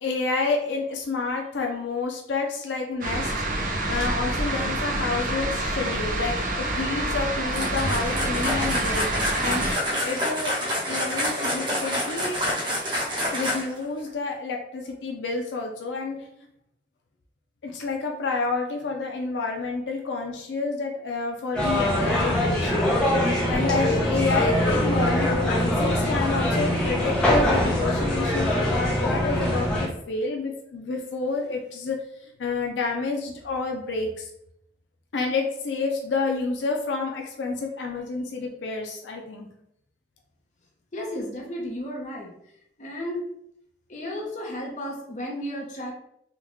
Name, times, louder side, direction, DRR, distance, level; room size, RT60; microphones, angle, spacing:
voice 1, 0.0-9.1 9.4-10.6 10.9-12.4 13.3-16.2 17.6-22.9 23.5-34.3 35.1-39.5, left 4 dB, 90° left, 1 dB, 0.5 m, -29 dB
sound 1, 3.0-9.7, right 2 dB, 50° right, 0.5 m, -27 dB
sound 2, 7.5-13.8, equal, 25° right, 0.9 m, -27 dB
sound 3, 21.5-29.9, left 1 dB, 5° left, 0.7 m, -23 dB
voice 2, 40.9-42.3 42.8-43.2 43.9-45.9, left 1 dB, 40° left, -2 dB, 0.8 m, -33 dB
3.5 x 2.3 x 3.0 m, 0.75 s
head